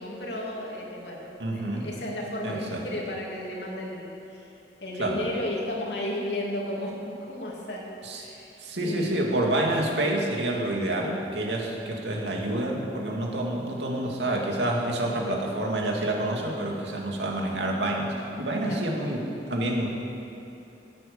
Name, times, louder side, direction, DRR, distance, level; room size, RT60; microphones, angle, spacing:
voice 1, 0.0-4.5 4.8-9.4 18.6-18.8, left 1 dB, 75° left, -3 dB, 2.9 m, -34 dB
voice 2, 1.4-1.9 2.4-2.8 5.0-5.2 8.0-8.2 8.6-19.9, right 1 dB, 85° right, -1 dB, 2.4 m, -28 dB
16.5 x 9.2 x 7.0 m, 2.9 s
head